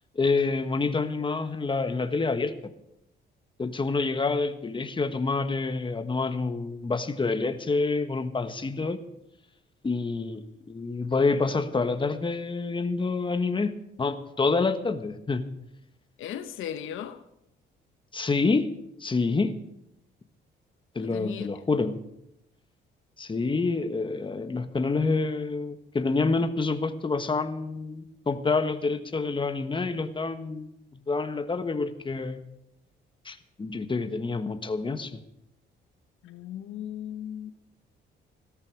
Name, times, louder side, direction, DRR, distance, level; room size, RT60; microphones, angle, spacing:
voice 1, 0.1-2.5 3.6-9.0 9.8-10.4 10.7-13.7 14.0-15.4 18.1-18.7 19.0-19.6 20.9-22.0 23.2-32.4 33.2-35.2, left 3 dB, 25° left, 1.4 m, -27 dB
voice 2, 16.2-17.2 21.0-21.5 36.2-37.5, left 10 dB, 85° left, 1.0 m, -37 dB
17.0 x 13.5 x 4.8 m
cardioid pair, 90°, 20 cm